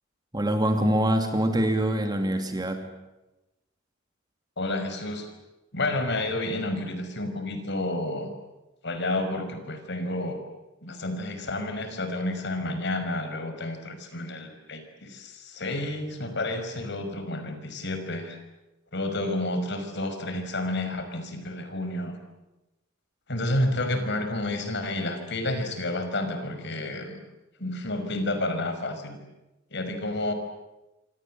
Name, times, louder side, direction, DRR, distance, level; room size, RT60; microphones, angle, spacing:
voice 1, 0.3-2.9, right 1 dB, 20° right, 5 dB, 2.9 m, -24 dB
voice 2, 4.6-5.3 5.7-8.3 8.8-10.4 10.8-18.4 18.9-22.2 23.3-27.2 27.6-29.2 29.7-30.3, left 1 dB, 60° left, 8 dB, 5.7 m, -30 dB
27.5 x 26.0 x 7.8 m, 0.99 s
head